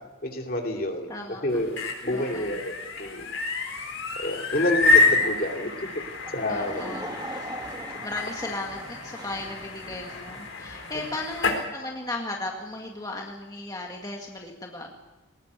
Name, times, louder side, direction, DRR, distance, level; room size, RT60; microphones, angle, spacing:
voice 1, 0.2-1.1 1.4-3.3 4.2-5.7 6.3-6.9, left 1 dB, 45° left, 2 dB, 2.8 m, -28 dB
voice 2, 1.1-1.6 2.1-2.6 5.2-5.4 6.5-7.5 8.0-15.0, left 2 dB, 20° left, 0 dB, 1.9 m, -36 dB
sound 1, 1.5-11.6, left 3 dB, 75° left, 4.1 m, -28 dB
Laughter / Crowd, 6.2-10.4, right 1 dB, 20° right, 2.0 m, -40 dB
19.5 x 19.5 x 8.2 m, 1.1 s
head